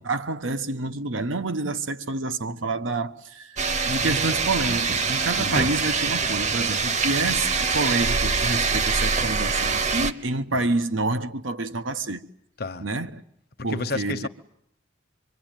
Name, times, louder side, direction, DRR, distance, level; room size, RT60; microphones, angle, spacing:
voice 1, 0.0-3.6 3.9-12.2 12.8-13.2 13.6-14.3, right 2 dB, 85° right, 1.1 m, -28 dB
sound 1, 3.6-10.1, right 4 dB, 40° right, 1.0 m, -24 dB
voice 2, 13.6-14.3, left 3 dB, 55° left, 1.0 m, -31 dB
26.0 x 23.5 x 9.1 m
head